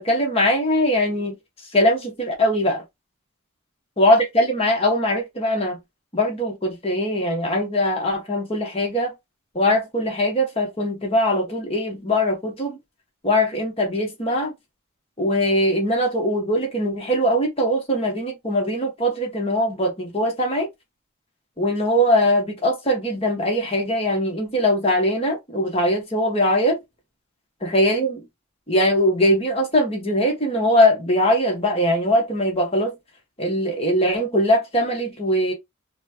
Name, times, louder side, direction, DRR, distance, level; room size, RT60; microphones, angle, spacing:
voice 1, 0.0-1.4 1.7-2.8 4.0-5.8 6.1-9.1 9.5-12.8 13.2-14.5 15.2-20.7 21.6-26.8 27.6-28.3 28.7-32.9 33.4-35.5, equal, 30° left, 1.4 m, -21 dB
4.2 x 2.4 x 2.9 m
head